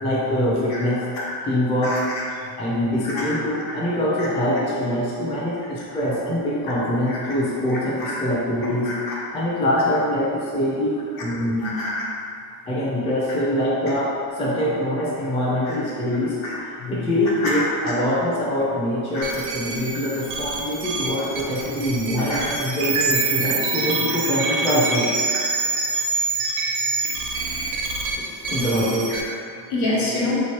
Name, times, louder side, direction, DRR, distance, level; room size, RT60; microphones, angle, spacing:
voice 1, 0.0-1.0 1.4-2.2 2.6-8.9 9.3-10.9 11.2-11.8 12.7-16.4 16.9-25.1 28.5-29.1, left 1 dB, 15° left, -7 dB, 0.4 m, -24 dB
voice 2, 8.8-9.2 11.6-12.1 15.7-15.8 16.4-17.0 17.4-17.9 19.1-19.3 22.3-22.5 29.1-29.2 29.7-30.4, left 2 dB, 60° left, -5 dB, 1.0 m, -27 dB
sound 1, 19.2-29.2, right 3 dB, 75° right, 0.6 m, -26 dB
3.1 x 2.8 x 2.9 m, 2.5 s
cardioid pair, 135°, 40 cm